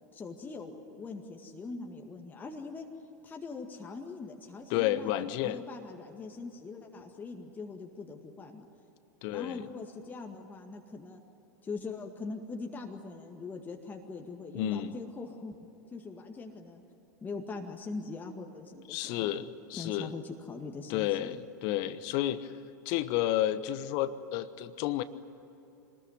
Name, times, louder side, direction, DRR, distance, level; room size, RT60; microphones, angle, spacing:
voice 1, 0.1-2.9 3.2-8.7 9.3-11.2 11.6-15.5 15.9-16.8 17.2-19.3 19.8-21.4, left 4 dB, 15° left, 2 dB, 2.0 m, -42 dB
voice 2, 4.7-5.6 9.2-9.6 14.5-14.9 18.9-20.1 20.9-22.5 22.8-25.0, left 13 dB, 45° left, 15 dB, 1.1 m, -31 dB
26.0 x 20.5 x 9.6 m, 3.0 s
figure-of-eight pair, 85°, 10 cm